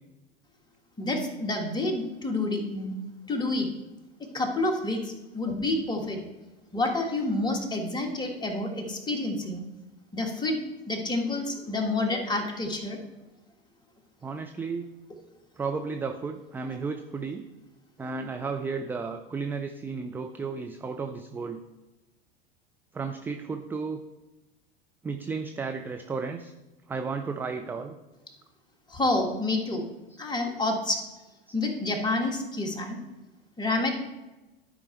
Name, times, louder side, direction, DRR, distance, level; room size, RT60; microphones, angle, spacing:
voice 1, 1.0-3.0 3.3-3.7 4.3-6.2 6.7-9.6 10.1-10.6 10.9-13.0 28.9-29.9 30.2-31.0 31.5-33.0 33.6-33.9, left 2 dB, 15° left, 3 dB, 1.6 m, -28 dB
voice 2, 14.2-14.9 15.6-17.5 18.0-21.6 22.9-24.0 25.0-26.5 26.9-28.0, right 4 dB, 5° right, 5 dB, 0.3 m, -33 dB
12.0 x 4.9 x 4.5 m, 1.1 s
figure-of-eight pair, 85°, 29 cm